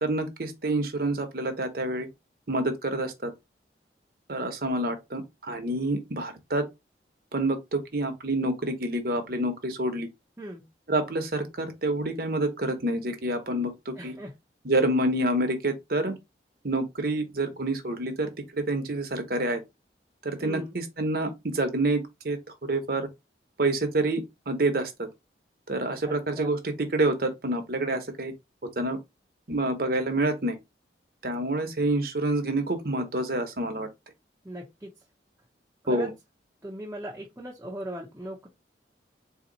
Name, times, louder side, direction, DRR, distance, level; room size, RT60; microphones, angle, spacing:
voice 1, 0.0-2.1 2.5-3.3 4.3-6.6 7.3-10.1 10.9-14.2 14.6-16.1 16.6-19.6 20.2-22.4 22.7-23.1 23.6-25.1 25.7-28.3 28.8-29.0 29.5-30.6 31.2-33.9 35.9-36.1, right 2 dB, 55° right, 1.0 m, -27 dB
voice 2, 10.4-10.7 14.0-14.3 20.4-20.8 26.0-26.5 34.4-34.9 35.9-36.1 36.6-38.5, right 1 dB, 10° right, 0.8 m, -39 dB
4.1 x 2.9 x 4.0 m
head